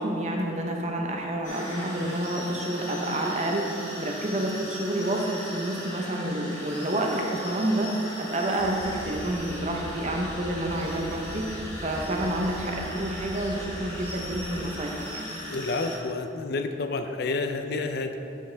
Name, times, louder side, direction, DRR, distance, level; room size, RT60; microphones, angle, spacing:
voice 1, 0.0-3.7 4.0-7.9 8.2-15.3, right 1 dB, 35° right, 0 dB, 0.9 m, -29 dB
sound 1, 1.4-16.0, equal, 15° left, 1.9 m, -39 dB
sound 2, 8.6-14.7, equal, 65° right, 1.2 m, -40 dB
voice 2, 15.5-18.2, left 3 dB, 55° left, 7 dB, 0.4 m, -29 dB
11.0 x 5.7 x 3.4 m, 2.7 s
head